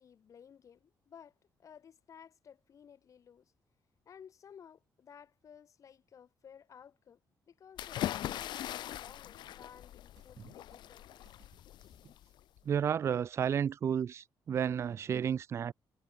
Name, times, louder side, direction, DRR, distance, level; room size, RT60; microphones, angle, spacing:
voice 1, 0.0-3.5 4.1-7.2 7.5-11.0, left 8 dB, 45° left, 2.1 m, -56 dB
sound 1, 7.8-12.6, left 13 dB, 80° left, 1.3 m, -41 dB
sound 2, 8.2-12.4, right 9 dB, 55° right, 5.3 m, -70 dB
voice 2, 12.7-15.7, right 8 dB, 35° right, 0.3 m, -32 dB
cardioid pair, 155°, 8 cm